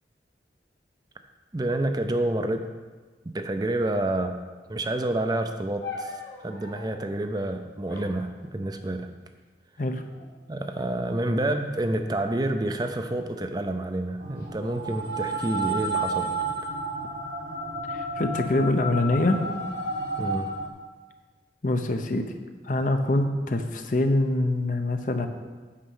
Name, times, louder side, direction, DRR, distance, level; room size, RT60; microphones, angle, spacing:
voice 1, 1.5-2.6 3.3-4.4 4.7-9.1 10.5-16.7 20.2-20.5, right 1 dB, 20° right, 6 dB, 0.5 m, -28 dB
sound 1, 5.8-7.1 7.9-9.1 9.9-10.4 10.7-11.3 12.0-13.3 14.0-14.5, left 4 dB, 65° left, 1.5 m, -43 dB
sound 2, 14.2-20.7, right 2 dB, 85° right, 1.6 m, -31 dB
voice 2, 17.9-19.4 21.6-22.2 22.6-25.3, left 2 dB, 45° left, 6 dB, 0.7 m, -24 dB
8.7 x 6.4 x 5.5 m, 1.3 s
head